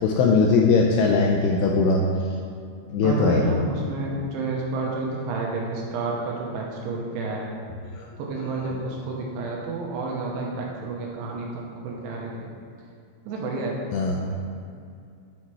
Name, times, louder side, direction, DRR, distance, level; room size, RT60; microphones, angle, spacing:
voice 1, 0.0-2.1 2.9-3.5 8.0-8.1 8.5-8.7 13.9-14.2, left 4 dB, 80° left, -1 dB, 2.6 m, -20 dB
voice 2, 3.0-7.5 8.2-12.5 13.3-13.8 14.2-14.6, right 3 dB, 80° right, -2 dB, 2.6 m, -30 dB
8.8 x 4.2 x 4.7 m, 2.4 s
omnidirectional pair, 5.4 m